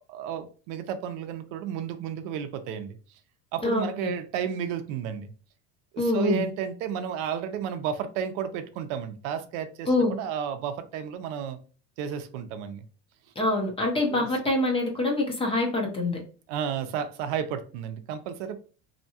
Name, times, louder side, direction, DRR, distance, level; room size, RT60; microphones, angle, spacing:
voice 1, 0.1-3.0 3.5-5.3 5.9-11.6 12.0-12.8 14.1-14.3 16.5-18.6, right 8 dB, 70° right, 9 dB, 0.5 m, -32 dB
voice 2, 3.6-4.1 6.0-6.4 9.9-10.1 13.4-16.2, left 2 dB, 15° left, 1 dB, 0.5 m, -25 dB
2.7 x 2.2 x 2.7 m, 0.38 s
supercardioid pair, 140°, 39 cm